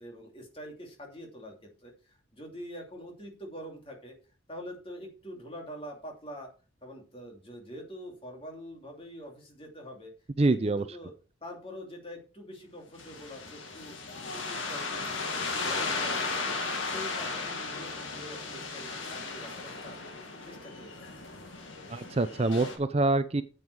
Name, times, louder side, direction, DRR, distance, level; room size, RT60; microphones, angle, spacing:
voice 1, 0.0-4.1 4.5-6.5 6.8-10.1 10.5-11.1 11.4-14.0 14.2-16.5 16.8-20.0 20.4-20.9, equal, 30° left, 1 dB, 2.6 m, -45 dB
voice 2, 10.4-10.8 21.9-23.4, right 2 dB, 30° right, 12 dB, 0.4 m, -25 dB
sound 1, 13.0-22.8, left 3 dB, 90° left, 2.1 m, -35 dB
9.1 x 8.0 x 4.7 m, 0.36 s
head